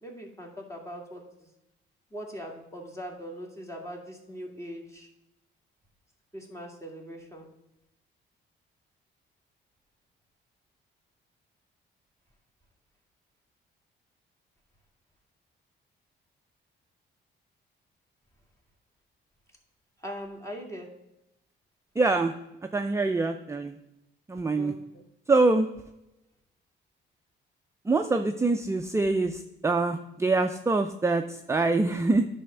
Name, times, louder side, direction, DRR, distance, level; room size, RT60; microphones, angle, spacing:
voice 1, 0.0-1.5 2.1-5.1 6.3-7.5 20.0-20.9 24.6-25.0, equal, 15° left, 0 dB, 2.2 m, -41 dB
voice 2, 22.0-22.3 22.7-23.7 24.3-24.7 25.3-25.7 27.9-32.3, right 3 dB, 15° right, 6 dB, 0.5 m, -25 dB
10.5 x 3.5 x 6.7 m, 0.89 s
cardioid pair, 90°, 20 cm